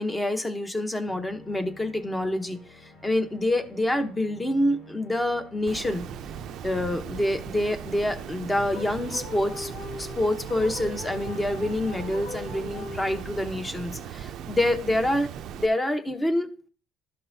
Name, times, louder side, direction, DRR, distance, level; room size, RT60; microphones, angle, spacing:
voice 1, 0.0-6.0 6.6-9.7 10.0-15.3 15.6-16.5, left 1 dB, 15° left, 8 dB, 0.9 m, -27 dB
sound 1, 1.1-14.1, left 2 dB, 55° left, 2.8 m, -51 dB
Water, 5.7-15.7, right 9 dB, 65° right, 0.4 m, -38 dB
sound 2, 8.7-13.6, left 4 dB, 75° left, 2.7 m, -40 dB
12.0 x 5.5 x 2.7 m, 0.42 s
cardioid pair, 125°, 0 cm